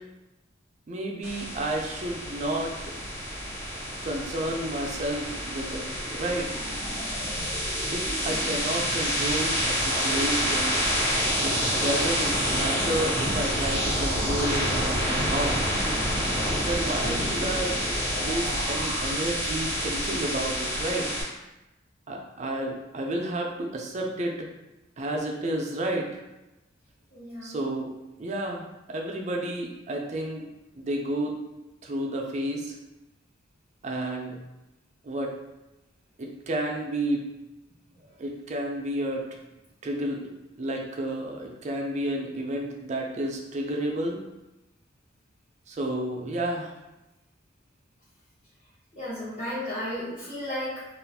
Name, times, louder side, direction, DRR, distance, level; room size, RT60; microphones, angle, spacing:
voice 1, 0.9-3.0 4.0-6.5 7.9-10.8 11.4-15.6 16.5-17.8 18.2-21.1 22.1-24.5 25.0-26.2 27.4-27.9 28.2-30.5 30.7-31.4 31.8-32.7 33.8-34.4 35.0-35.3 36.2-37.2 38.2-39.2 39.8-40.2 40.6-44.2 45.7-46.7, right 1 dB, 35° right, 1 dB, 0.4 m, -31 dB
sound 1, 1.2-21.2, equal, 60° left, 1.0 m, -28 dB
voice 2, 27.1-27.6 48.9-50.9, left 1 dB, 35° left, -11 dB, 0.8 m, -34 dB
2.4 x 2.4 x 3.4 m, 0.98 s
head